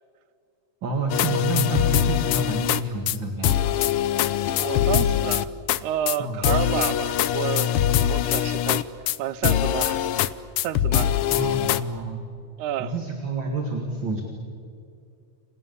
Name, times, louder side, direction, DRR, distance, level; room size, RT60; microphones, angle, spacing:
voice 1, 0.8-3.5 6.2-6.4 11.3-12.2 12.8-14.2, right 3 dB, 40° right, 2.8 m, -28 dB
sound 1, 1.1-2.8 3.1-3.2 3.4-5.8 6.1-6.2 6.4-9.2 9.4-10.3 10.6-11.8, left 11 dB, 90° left, 1.2 m, -22 dB
voice 2, 4.6-5.5 5.8-7.8 8.1-8.8 9.2-10.0 10.6-11.1 12.6-12.9, right 11 dB, 75° right, 2.4 m, -29 dB
29.5 x 27.0 x 7.2 m
omnidirectional pair, 3.5 m